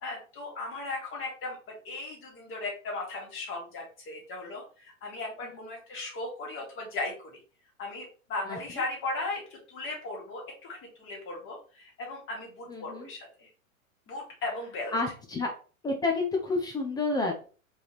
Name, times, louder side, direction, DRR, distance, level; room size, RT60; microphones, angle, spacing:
voice 1, 0.0-7.4 7.8-13.5 14.1-14.9, left 2 dB, 30° left, -1 dB, 2.1 m, -37 dB
voice 2, 12.7-13.1 14.9-15.5 15.8-17.5, left 3 dB, 10° left, 2 dB, 0.4 m, -29 dB
4.5 x 3.5 x 3.0 m, 0.38 s
hypercardioid pair, 105°, 42 cm